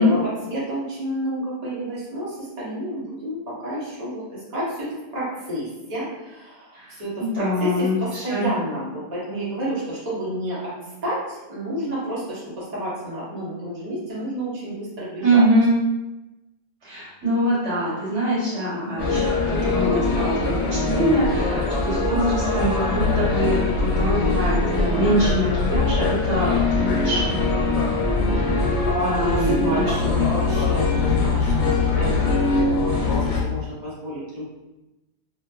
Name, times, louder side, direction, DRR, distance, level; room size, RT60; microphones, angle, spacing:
voice 1, 0.0-10.7 11.0-15.5 28.9-34.5, equal, 40° right, -8 dB, 0.9 m, -30 dB
voice 2, 6.7-8.5 15.2-15.8 16.8-27.4 28.3-28.7 29.0-30.1, right 1 dB, 85° right, -8 dB, 1.3 m, -23 dB
sound 1, 19.0-33.4, left 2 dB, 85° left, 0.9 m, -23 dB
sound 2, 23.0-24.7 25.1-29.2 29.7-33.8, left 10 dB, 70° left, 1.2 m, -28 dB
2.5 x 2.5 x 2.2 m, 1.0 s
omnidirectional pair, 1.1 m